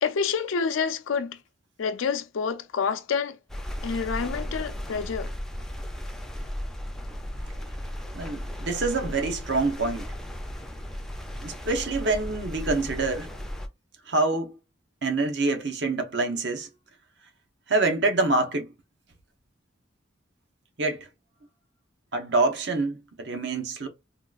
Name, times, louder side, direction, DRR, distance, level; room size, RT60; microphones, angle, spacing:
voice 1, 0.0-1.4 1.8-3.4 3.8-5.3, left 6 dB, 85° left, 0.4 m, -28 dB
sound 1, 3.5-13.7, equal, ahead, 0.4 m, -35 dB
voice 2, 8.1-10.1 11.4-13.3 14.1-14.5 15.0-16.7 17.7-18.7 20.8-21.1 22.1-23.9, right 3 dB, 60° right, 0.8 m, -26 dB
3.7 x 2.3 x 2.4 m
head